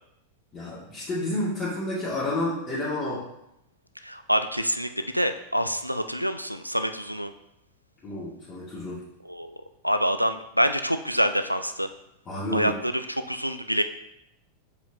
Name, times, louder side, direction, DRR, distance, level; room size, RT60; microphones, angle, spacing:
voice 1, 0.5-3.3 8.0-9.0 12.3-12.7, left 1 dB, 25° left, -9 dB, 1.9 m, -30 dB
voice 2, 4.0-7.3 9.3-9.5 9.8-11.9 12.5-12.9 13.3-13.8, equal, 90° right, 9 dB, 0.3 m, -26 dB
6.8 x 5.0 x 2.8 m, 0.80 s
figure-of-eight pair, 90°, 0 cm